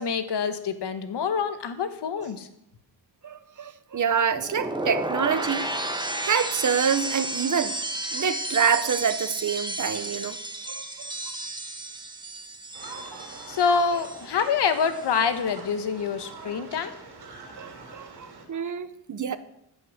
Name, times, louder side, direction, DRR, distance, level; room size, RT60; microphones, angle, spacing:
voice 1, 0.0-2.5 13.5-16.9, left 6 dB, 85° left, 1.2 m, -26 dB
voice 2, 3.2-5.6 6.2-7.8 8.1-10.4 10.7-11.1 16.5-16.6 17.6-18.1 18.5-19.4, right 7 dB, 50° right, 0.8 m, -26 dB
sound 1, 4.3-14.5 14.7-15.2, right 2 dB, 10° right, 1.2 m, -33 dB
sound 2, 12.7-18.5, right 3 dB, 70° right, 2.6 m, -43 dB
14.5 x 5.5 x 6.4 m
cardioid pair, 85°, 40 cm